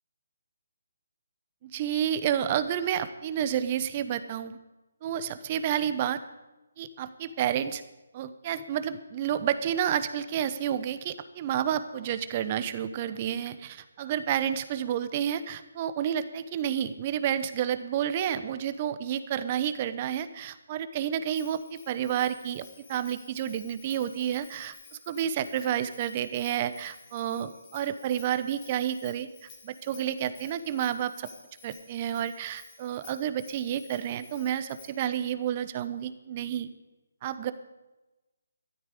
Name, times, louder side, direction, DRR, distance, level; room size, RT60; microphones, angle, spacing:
voice 1, 1.6-4.6 5.0-6.2 6.8-7.8 8.1-24.7 25.1-29.3 29.6-31.3 31.6-36.7 37.2-37.5, right 10 dB, 30° right, 12 dB, 0.9 m, -30 dB
Bell, 21.3-35.1, left 4 dB, 25° left, 2.6 m, -53 dB
13.0 x 13.0 x 5.1 m, 1.1 s
figure-of-eight pair, 150°, 0 cm